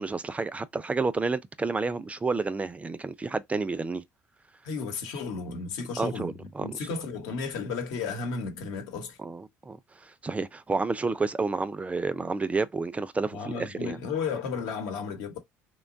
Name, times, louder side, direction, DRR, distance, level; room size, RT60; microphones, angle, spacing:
voice 1, 0.0-4.0 6.0-6.8 9.2-14.0, right 3 dB, 20° right, 0.4 m, -30 dB
voice 2, 4.6-6.3 6.6-9.2 13.3-15.4, left 5 dB, 75° left, 1.0 m, -33 dB
3.0 x 2.2 x 2.5 m
supercardioid pair, 75°, 7 cm